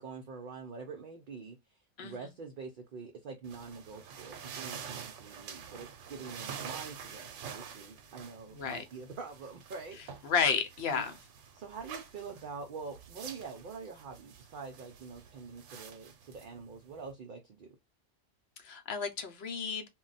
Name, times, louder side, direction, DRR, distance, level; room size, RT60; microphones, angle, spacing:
voice 1, 0.0-10.3 10.9-11.1 11.5-17.8, right 4 dB, 55° right, 0.6 m, -45 dB
voice 2, 2.0-2.3 8.5-8.8 10.2-11.1 18.6-19.9, left 6 dB, 65° left, 0.8 m, -32 dB
sound 1, 3.4-17.1, right 7 dB, 80° right, 0.9 m, -47 dB
2.3 x 2.1 x 3.8 m
omnidirectional pair, 1.2 m